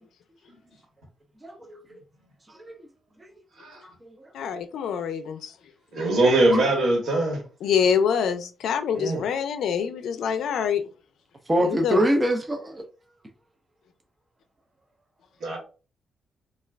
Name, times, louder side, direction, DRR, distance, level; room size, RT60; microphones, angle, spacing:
voice 1, 1.4-2.0 2.5-2.6 3.2-3.3 3.8-4.3 5.9-6.2 6.5-6.6 7.1-7.2 11.5-12.8, right 1 dB, 15° right, 0.3 m, -26 dB
voice 2, 4.3-5.5 5.9-6.0 7.6-10.9 11.6-12.0, left 7 dB, 80° left, 0.4 m, -25 dB
voice 3, 5.9-7.4 8.9-9.2 15.4-15.6, right 2 dB, 65° right, 1.2 m, -21 dB
2.3 x 2.3 x 3.2 m
wide cardioid pair, 160°, 0 cm